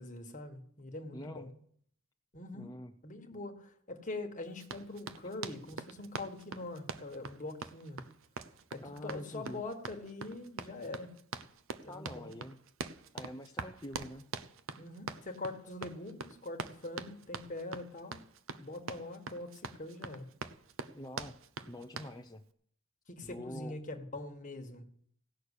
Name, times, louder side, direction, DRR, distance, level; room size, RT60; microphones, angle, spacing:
voice 1, 0.0-1.5 2.3-2.7 3.0-8.0 8.7-11.1 11.8-12.3 14.8-18.2 18.6-20.3 23.1-24.8, left 2 dB, 40° left, 4 dB, 1.6 m, -43 dB
voice 2, 1.1-1.5 2.5-2.9 8.8-9.6 11.8-12.6 13.1-14.3 20.9-21.4 21.6-22.4 23.2-23.8, left 1 dB, 20° left, 2 dB, 0.6 m, -45 dB
Run, 4.6-22.2, right 4 dB, 70° right, 0.7 m, -44 dB
16.5 x 6.4 x 8.3 m, 0.63 s
head